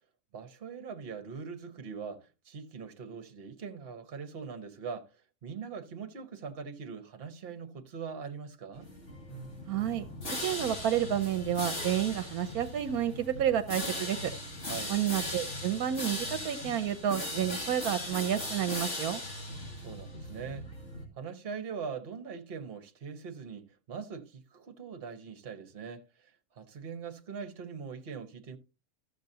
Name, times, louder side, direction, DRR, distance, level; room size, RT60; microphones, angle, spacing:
voice 1, 0.3-5.1 5.4-8.9 14.7-15.0 19.7-20.7 21.2-26.0 26.5-28.6, right 6 dB, 45° right, 1.1 m, -42 dB
sound 1, 8.7-21.1, left 1 dB, 50° left, 2.6 m, -38 dB
voice 2, 9.7-10.0 10.4-14.3 14.9-19.2, right 10 dB, 75° right, 1.1 m, -30 dB
13.5 x 6.6 x 2.7 m
omnidirectional pair, 1.6 m